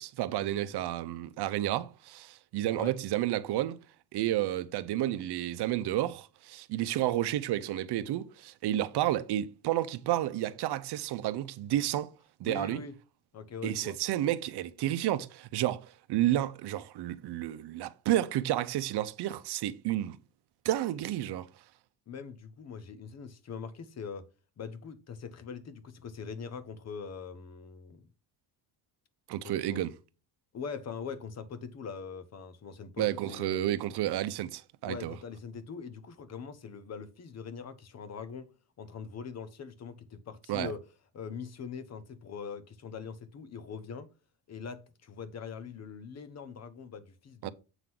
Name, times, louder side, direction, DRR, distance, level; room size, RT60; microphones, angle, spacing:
voice 1, 0.0-3.8 4.1-12.1 12.4-12.8 13.6-20.2 20.6-21.5 29.3-29.9 33.0-35.1 40.5-40.7 47.4-47.5, right 13 dB, 65° right, 0.8 m, -31 dB
voice 2, 12.4-13.0 13.3-14.0 22.1-24.3 24.6-28.1 29.4-29.8 30.5-33.6 34.8-38.5 38.8-40.8 41.1-44.1 44.5-47.5, left 6 dB, 35° left, 0.9 m, -42 dB
8.0 x 3.8 x 6.0 m
cardioid pair, 135°, 42 cm